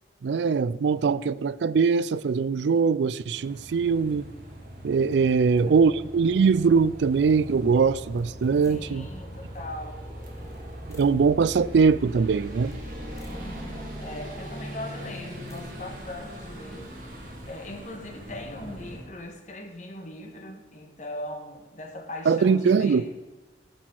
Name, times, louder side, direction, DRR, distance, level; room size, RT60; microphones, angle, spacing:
voice 1, 0.2-4.3 4.8-9.1 10.9-12.8 22.3-23.1, right 5 dB, 75° right, 0.4 m, -22 dB
sound 1, 3.3-19.1, equal, 45° right, 2.2 m, -40 dB
voice 2, 5.2-5.8 8.6-10.1 13.3-23.1, left 1 dB, 40° left, 1.5 m, -40 dB
sound 2, 8.1-9.2 10.3-11.3 12.6-13.8 14.9-15.8, left 1 dB, 15° left, 1.2 m, -50 dB
15.0 x 6.2 x 4.6 m
head